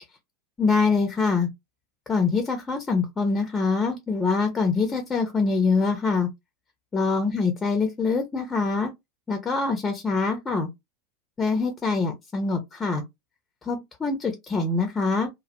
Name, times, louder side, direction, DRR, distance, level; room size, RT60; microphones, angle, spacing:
voice 1, 0.6-1.5 2.1-6.3 6.9-8.9 9.3-10.7 11.4-13.0 13.6-15.3, left 4 dB, 20° left, 0.6 m, -24 dB
2.3 x 2.0 x 2.8 m
figure-of-eight pair, 85°, 0 cm